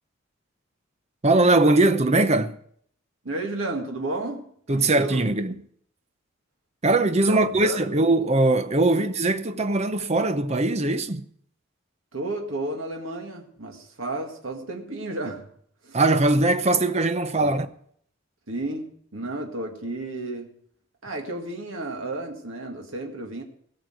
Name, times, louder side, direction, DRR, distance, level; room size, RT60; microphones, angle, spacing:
voice 1, 1.2-2.6 4.7-5.6 6.8-11.2 15.9-17.7, right 2 dB, 30° right, 0.8 m, -21 dB
voice 2, 3.2-5.3 7.3-7.8 8.9-9.0 12.1-15.5 15.8-16.0 17.4-17.5 18.5-20.5 21.0-23.4, right 2 dB, 75° right, 2.1 m, -32 dB
17.5 x 6.7 x 7.8 m
head